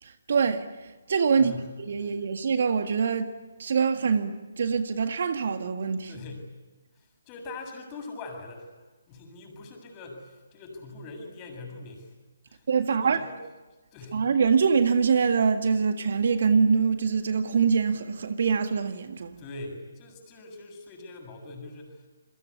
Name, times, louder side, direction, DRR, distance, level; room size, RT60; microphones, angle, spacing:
voice 1, 0.0-1.5 1.8-3.3 3.6-6.1 12.7-13.3 14.1-19.3, right 5 dB, 55° right, 1.8 m, -24 dB
voice 2, 1.3-1.7 6.1-6.6 6.9-8.7 9.1-12.1 12.5-13.4 13.9-14.2 19.4-22.1, left 3 dB, 25° left, 7.2 m, -42 dB
28.5 x 23.5 x 8.6 m
figure-of-eight pair, 140°, 0 cm